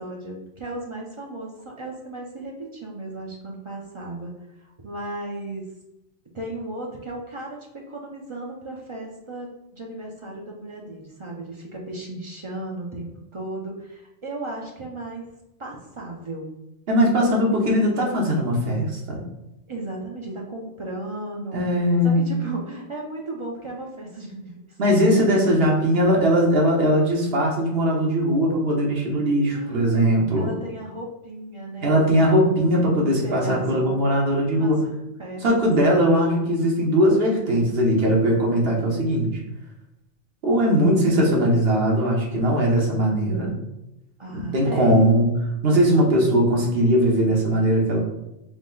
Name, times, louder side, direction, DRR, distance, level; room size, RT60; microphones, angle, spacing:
voice 1, 0.0-5.7 6.3-15.3 15.6-16.5 19.7-25.0 29.5-30.1 30.3-32.0 33.0-34.1 34.6-34.8 35.2-35.4 44.2-45.0, right 2 dB, 35° right, -1 dB, 0.5 m, -35 dB
voice 2, 16.9-19.2 21.5-22.3 24.8-30.5 31.8-34.8 35.4-39.3 40.4-43.5 44.3-45.3 45.6-48.0, equal, 55° right, -1 dB, 1.1 m, -20 dB
5.0 x 2.1 x 3.8 m, 0.88 s
omnidirectional pair, 1.2 m